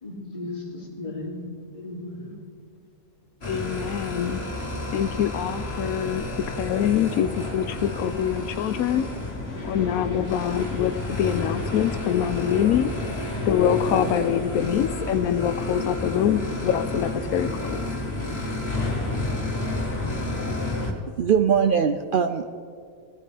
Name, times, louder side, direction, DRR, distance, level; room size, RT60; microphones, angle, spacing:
voice 1, 0.0-2.4, left 2 dB, 25° left, -3 dB, 2.5 m, -36 dB
sound 1, 3.4-20.9, left 2 dB, 45° left, 2.0 m, -30 dB
voice 2, 3.5-4.4 4.9-9.1 9.6-12.9 13.4-17.8, left 9 dB, 80° left, 11 dB, 1.0 m, -24 dB
voice 3, 21.2-22.6, right 7 dB, 90° right, 7 dB, 0.4 m, -22 dB
19.5 x 13.5 x 3.4 m, 2.1 s
omnidirectional pair, 1.5 m